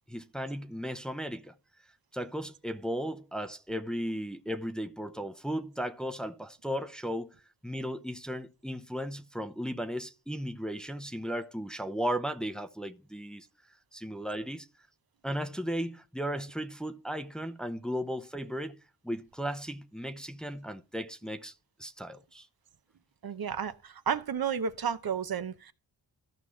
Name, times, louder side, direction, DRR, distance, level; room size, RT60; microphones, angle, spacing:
voice 1, 0.1-1.5 2.1-7.3 7.6-13.5 13.9-14.7 15.2-18.8 19.0-21.5 21.8-22.5, equal, ahead, 0.8 m, -35 dB
voice 2, 23.2-25.7, right 7 dB, 50° right, 0.9 m, -32 dB
14.5 x 5.5 x 3.1 m
cardioid pair, 50°, 47 cm